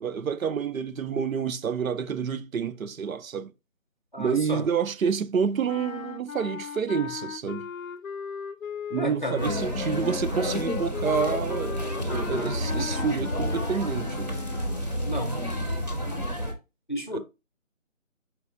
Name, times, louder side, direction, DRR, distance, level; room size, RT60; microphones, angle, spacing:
voice 1, 0.0-3.5 4.2-7.7 8.9-14.4 17.1-17.2, right 6 dB, 85° right, 0.6 m, -29 dB
voice 2, 4.1-4.6 9.0-9.5 15.0-15.4 16.9-17.2, equal, 40° left, 0.6 m, -32 dB
sound 1, 5.7-14.8, left 7 dB, 90° left, 0.6 m, -37 dB
sound 2, 9.4-16.5, equal, 35° right, 0.6 m, -30 dB
4.7 x 3.2 x 2.4 m
figure-of-eight pair, 175°, 40 cm